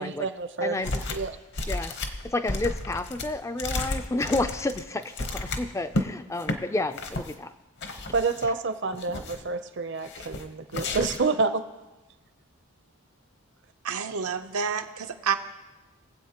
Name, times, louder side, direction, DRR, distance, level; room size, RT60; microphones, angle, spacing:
voice 1, 0.0-0.8 1.1-1.4 8.1-11.6, right 4 dB, 55° right, 10 dB, 0.7 m, -28 dB
voice 2, 0.6-1.0 1.7-1.9 2.2-7.5 8.0-8.1, left 2 dB, 15° left, 10 dB, 0.4 m, -30 dB
sound 1, 0.8-1.3 1.5-6.1 6.4-6.6 6.9-7.3 7.8-8.5 8.9-9.5 10.0-10.4 10.7-11.3, left 2 dB, 50° left, 0.9 m, -32 dB
voice 3, 13.8-15.3, right 6 dB, 85° right, 6 dB, 0.8 m, -29 dB
22.0 x 7.9 x 3.0 m, 1.1 s
head